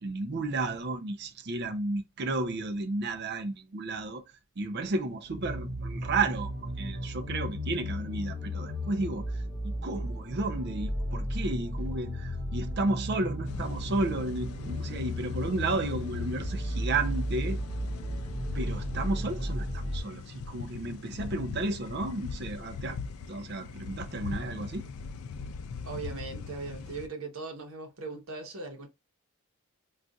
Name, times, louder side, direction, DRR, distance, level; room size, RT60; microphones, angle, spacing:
voice 1, 0.0-4.2 4.6-17.6 18.5-23.0 23.3-24.9, right 2 dB, 50° right, 0.5 m, -32 dB
sound 1, 5.2-20.0, equal, 25° right, 1.8 m, -34 dB
sound 2, 13.4-27.1, left 4 dB, 80° left, 0.4 m, -41 dB
voice 2, 25.8-28.9, right 3 dB, 65° right, 0.9 m, -39 dB
3.8 x 2.4 x 2.3 m
head